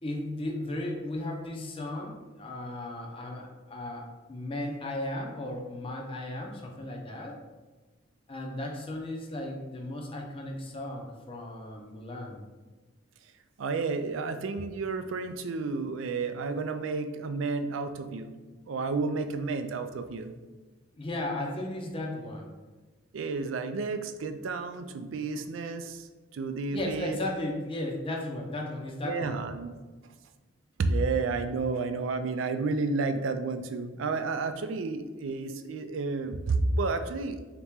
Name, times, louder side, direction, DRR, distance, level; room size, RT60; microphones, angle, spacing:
voice 1, 0.0-7.3 8.3-12.4 20.9-22.5 26.7-29.4, left 1 dB, 30° left, 0 dB, 0.6 m, -35 dB
voice 2, 13.6-18.3 18.7-20.3 23.1-26.1 26.3-27.2 29.0-29.7 30.8-37.4, right 3 dB, 75° right, 9 dB, 0.4 m, -31 dB
4.1 x 2.9 x 3.6 m, 1.3 s
head